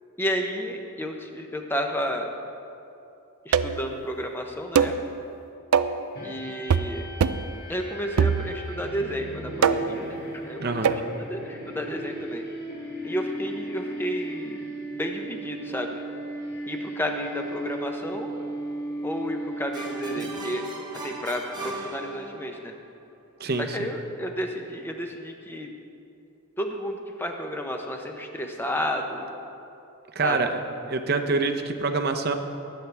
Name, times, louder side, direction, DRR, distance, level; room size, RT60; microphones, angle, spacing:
voice 1, 0.2-2.3 3.4-4.9 6.2-7.1 7.7-11.0 11.3-12.4 13.0-14.6 14.9-16.0 16.7-18.3 19.0-20.6 20.9-22.7 23.6-25.7 26.6-29.3 30.2-30.4, equal, 10° left, 3 dB, 0.8 m, -31 dB
sound 1, 3.5-3.9 4.8-5.0 5.7-6.0 6.7-6.9 7.2-7.5 8.2-8.8 9.6-10.0 10.8-11.1, right 6 dB, 80° right, 0.4 m, -22 dB
sound 2, 6.1-20.6, right 1 dB, 45° left, 2.0 m, -36 dB
voice 2, 10.6-10.9 23.4-23.9 30.1-30.6 30.9-32.3, right 3 dB, 45° right, 6 dB, 0.7 m, -26 dB
sound 3, 19.7-22.7, right 2 dB, 20° right, 0.9 m, -38 dB
20.0 x 8.3 x 3.4 m, 2.8 s
head